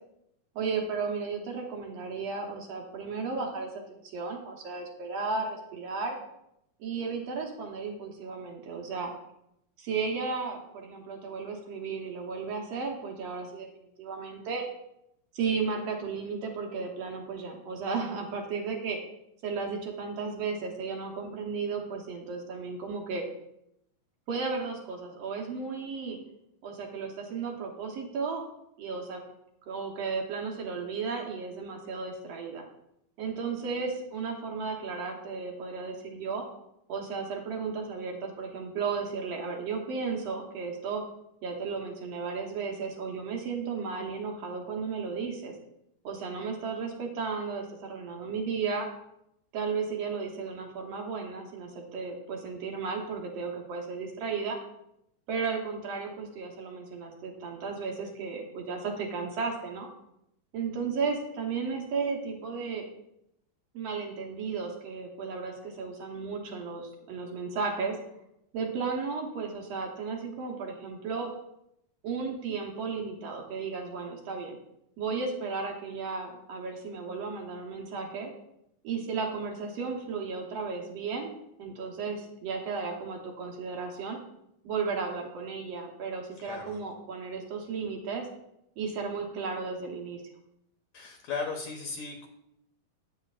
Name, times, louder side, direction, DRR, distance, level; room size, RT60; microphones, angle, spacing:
voice 1, 0.6-3.7 4.0-6.2 6.8-9.1 9.8-14.6 15.3-19.0 19.4-23.2 24.3-26.2 26.6-28.4 28.8-29.2 29.7-32.6 33.2-36.5 36.9-41.0 41.4-45.6 46.0-48.9 49.5-54.6 55.3-59.9 60.5-62.8 63.7-68.0 68.5-71.3 72.0-74.6 75.0-78.3 78.8-84.2 84.6-88.3 88.8-90.2, right 5 dB, 65° right, 1 dB, 1.8 m, -34 dB
voice 2, 86.4-86.8 90.9-92.3, left 4 dB, 70° left, 3 dB, 2.0 m, -36 dB
10.0 x 8.4 x 2.4 m, 0.80 s
omnidirectional pair, 3.9 m